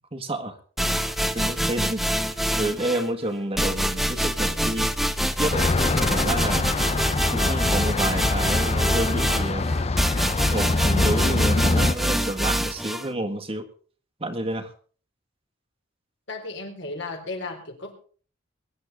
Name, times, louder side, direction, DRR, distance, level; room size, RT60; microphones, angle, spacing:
voice 1, 0.1-0.6 1.3-2.0 2.5-4.9 5.2-5.7 6.0-6.7 7.3-9.7 10.5-13.7 14.2-14.7, right 1 dB, 30° right, 4 dB, 1.8 m, -29 dB
sound 1, 0.8-3.1 3.6-13.1, equal, ahead, 0.9 m, -25 dB
sound 2, 5.5-11.9, left 3 dB, 30° left, 0.5 m, -24 dB
voice 2, 16.3-17.9, left 3 dB, 65° left, 3 dB, 4.1 m, -34 dB
22.5 x 10.5 x 3.7 m, 0.42 s
head